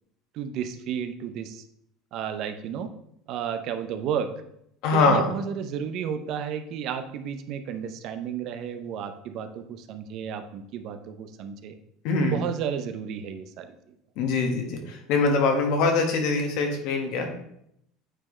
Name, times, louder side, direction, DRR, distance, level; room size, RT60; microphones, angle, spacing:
voice 1, 0.3-1.6 2.1-2.9 3.3-4.3 4.9-11.8 12.3-13.7, right 8 dB, 50° right, 9 dB, 0.6 m, -32 dB
voice 2, 4.8-5.3 12.0-12.4 14.2-17.3, left 3 dB, 60° left, 3 dB, 1.4 m, -23 dB
8.9 x 4.5 x 3.3 m, 0.74 s
cardioid pair, 155°, 0 cm